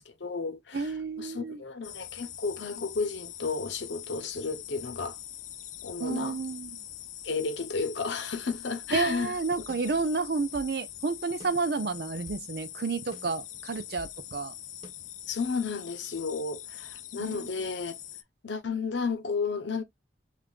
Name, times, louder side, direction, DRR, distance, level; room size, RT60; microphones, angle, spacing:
voice 1, 0.0-5.2 5.8-6.4 7.2-9.4 15.3-18.0 18.4-19.8, left 4 dB, 80° left, 0.8 m, -33 dB
voice 2, 0.7-1.6 6.0-6.8 8.9-14.5, right 4 dB, 60° right, 0.5 m, -30 dB
sound 1, 1.8-18.2, left 11 dB, 40° left, 0.4 m, -43 dB
sound 2, 9.7-10.8 11.4-12.5 13.1-14.2 14.8-14.9, right 1 dB, 30° right, 1.2 m, -50 dB
5.8 x 2.4 x 2.4 m
head